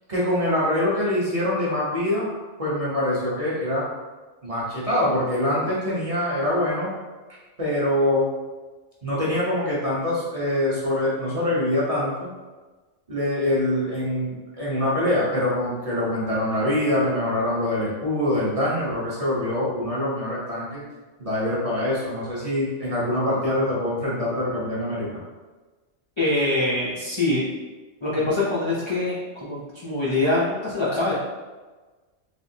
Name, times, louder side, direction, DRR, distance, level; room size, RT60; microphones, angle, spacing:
voice 1, 0.1-2.3 2.6-3.9 4.4-6.9 7.6-8.3 9.0-12.3 13.1-20.8 21.2-25.2, left 1 dB, 30° right, -7 dB, 0.8 m, -24 dB
voice 2, 26.2-27.5 28.0-29.1 29.4-31.2, left 2 dB, 45° left, -7 dB, 0.3 m, -24 dB
3.4 x 2.7 x 2.7 m, 1.3 s
omnidirectional pair, 1.3 m